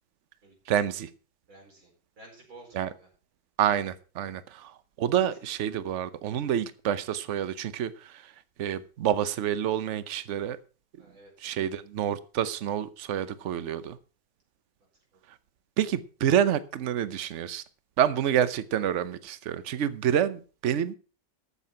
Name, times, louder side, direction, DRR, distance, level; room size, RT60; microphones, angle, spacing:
voice 1, 0.7-1.1 2.7-2.9 3.6-8.3 8.6-10.6 11.4-14.0 15.8-17.6 18.0-21.0, right 10 dB, 60° right, 0.8 m, -28 dB
voice 2, 1.5-1.9 2.2-3.1 4.5-4.6 5.0-5.3 11.0-11.6 15.1-15.2, right 2 dB, 80° right, 5.5 m, -52 dB
13.5 x 7.1 x 5.7 m
omnidirectional pair, 2.1 m